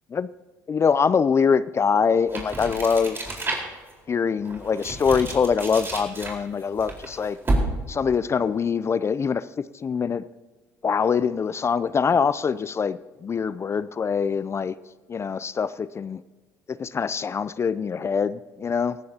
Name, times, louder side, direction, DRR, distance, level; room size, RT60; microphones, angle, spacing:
voice 1, 0.7-3.2 4.1-7.4 7.9-9.5 9.8-10.3 10.8-14.7 15.1-16.2 16.7-19.0, left 6 dB, 35° left, 16 dB, 0.4 m, -24 dB
sound 1, 2.3-3.9 4.4-8.0, right 2 dB, 30° right, 4.2 m, -30 dB
18.5 x 14.0 x 2.8 m, 1.3 s
hypercardioid pair, 70°, 8 cm